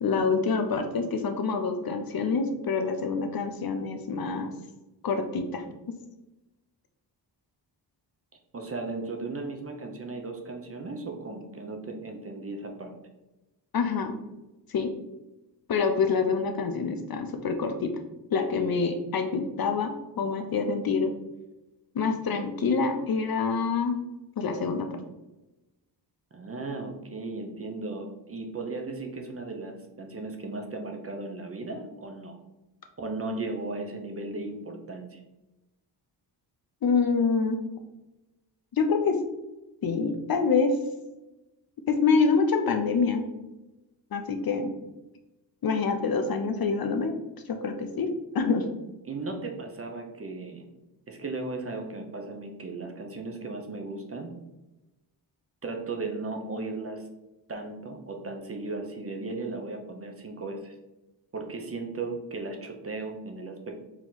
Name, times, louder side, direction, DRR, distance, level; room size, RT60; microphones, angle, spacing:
voice 1, 0.0-4.5 5.0-5.6 13.7-14.1 14.7-14.9 15.7-17.9 18.3-21.1 21.9-24.0 24.4-24.9 36.8-37.6 38.7-39.2 39.8-40.8 41.9-43.3 44.1-44.7 45.6-47.1 47.5-48.7, left 5 dB, 55° left, 6 dB, 0.6 m, -26 dB
voice 2, 8.5-13.0 26.3-32.3 33.0-35.2 49.0-50.7 51.1-54.3 55.6-57.1 57.5-60.7 61.3-63.8, right 3 dB, 30° right, 3 dB, 0.6 m, -36 dB
4.4 x 2.9 x 3.9 m, 1.0 s
wide cardioid pair, 125°, 44 cm